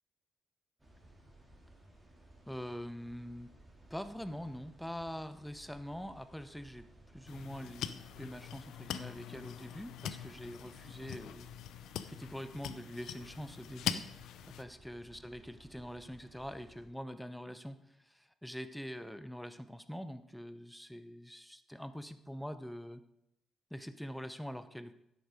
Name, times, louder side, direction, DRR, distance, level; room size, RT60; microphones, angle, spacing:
sound 1, 0.8-16.9, right 1 dB, 15° right, 2.9 m, -60 dB
voice 1, 2.5-3.5 3.9-6.9 7.1-11.5 12.1-14.1 14.5-23.0 23.7-24.9, equal, 5° left, 10 dB, 0.9 m, -44 dB
sound 2, 7.3-14.6, left 10 dB, 80° left, 0.6 m, -43 dB
11.0 x 8.3 x 5.2 m, 0.80 s
cardioid pair, 90°, 0 cm